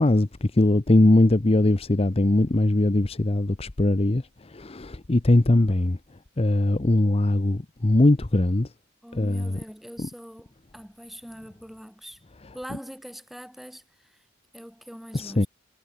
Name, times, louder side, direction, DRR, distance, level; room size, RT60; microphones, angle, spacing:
voice 1, 0.0-6.0 6.4-8.7 9.1-9.6 10.0-10.1 15.1-15.5, left 2 dB, 30° left, 0.7 m, -21 dB
voice 2, 5.4-5.8 9.0-12.2 12.5-14.2 14.5-15.5, equal, ahead, 2.0 m, -43 dB
head